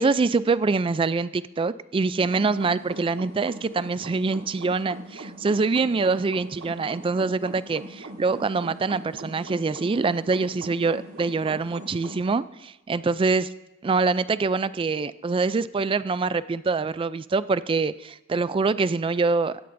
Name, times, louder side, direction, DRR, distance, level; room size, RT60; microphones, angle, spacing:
voice 1, 0.0-13.5 13.8-19.6, right 4 dB, 25° right, 16 dB, 0.3 m, -25 dB
sound 1, 2.2-12.2, right 1 dB, 90° right, 1.8 m, -41 dB
16.5 x 16.0 x 2.6 m, 0.96 s
head